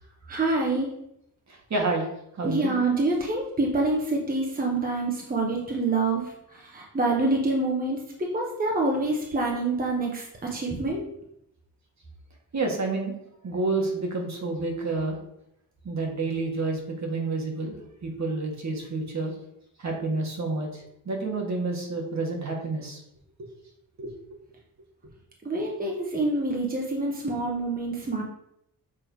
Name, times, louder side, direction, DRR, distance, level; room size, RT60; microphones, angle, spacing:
voice 1, 0.3-0.9 2.4-11.0 25.4-28.2, right 2 dB, 25° right, -1 dB, 1.1 m, -26 dB
voice 2, 1.5-2.1 2.3-2.8 12.5-13.2 13.4-15.2 15.8-19.3 19.8-23.0 24.0-24.1, right 3 dB, 50° right, 1 dB, 1.5 m, -29 dB
6.4 x 3.3 x 4.6 m, 0.77 s
cardioid pair, 95°, 37 cm